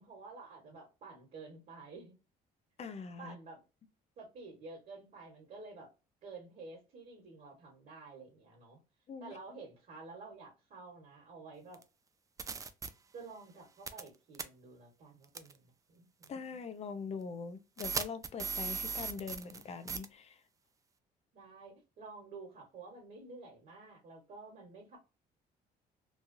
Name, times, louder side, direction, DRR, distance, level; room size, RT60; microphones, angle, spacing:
voice 1, 0.0-2.1 3.2-3.6 4.2-5.9 6.2-8.8 9.2-11.8 13.1-16.3 21.3-25.0, right 3 dB, 50° right, 1.4 m, -51 dB
voice 2, 2.8-3.4 9.1-9.4 16.3-20.4, left 5 dB, 40° left, 0.5 m, -43 dB
sound 1, 11.7-11.8 12.4-12.9 13.9-14.1 14.4-14.5 15.4-15.5 16.2-16.3 17.8-19.6 19.9-20.1, right 5 dB, 20° right, 0.3 m, -37 dB
3.1 x 2.3 x 2.6 m
cardioid pair, 110°, 17 cm